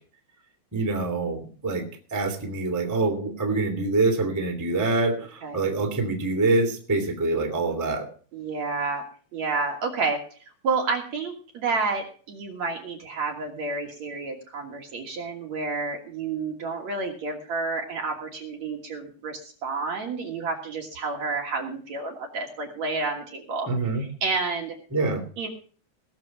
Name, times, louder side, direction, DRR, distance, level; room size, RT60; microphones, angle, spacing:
voice 1, 0.7-1.8 2.1-8.1 23.7-24.0 24.9-25.2, right 3 dB, 5° right, 2 dB, 1.3 m, -25 dB
voice 2, 8.3-9.0 9.3-10.2 10.6-23.7 24.0-24.8 25.4-25.5, right 4 dB, 55° right, 1 dB, 2.4 m, -30 dB
19.0 x 6.9 x 5.8 m, 0.43 s
omnidirectional pair, 4.7 m